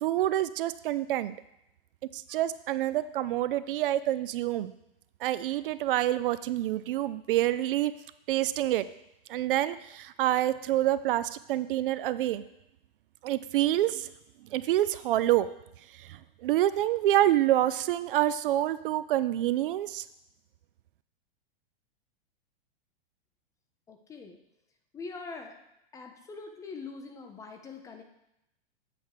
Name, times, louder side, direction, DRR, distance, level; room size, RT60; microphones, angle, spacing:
voice 1, 0.0-1.3 2.1-4.7 5.2-7.9 8.3-8.8 9.3-12.4 13.2-14.1 14.5-15.5 15.9-20.0, right 13 dB, 65° right, 14 dB, 0.5 m, -27 dB
voice 2, 23.9-24.4 24.9-25.5 25.9-28.0, left 4 dB, 10° left, 4 dB, 0.4 m, -43 dB
7.9 x 3.4 x 6.3 m, 0.85 s
hypercardioid pair, 140°, 29 cm